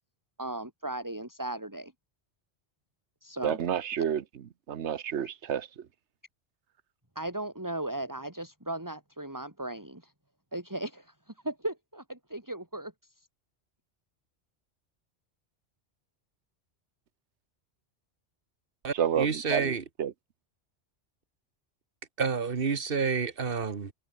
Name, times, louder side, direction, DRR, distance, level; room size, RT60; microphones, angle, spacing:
voice 1, 0.4-1.9 3.2-3.6 7.1-10.1 10.5-13.3, right 1 dB, 15° right, 3.3 m, -37 dB
voice 2, 3.4-4.2 4.7-5.7 19.0-19.7 20.0-20.1, right 9 dB, 80° right, 1.3 m, -29 dB
voice 3, 18.8-19.8 22.2-23.9, right 5 dB, 55° right, 1.6 m, -29 dB
open air
omnidirectional pair, 1.2 m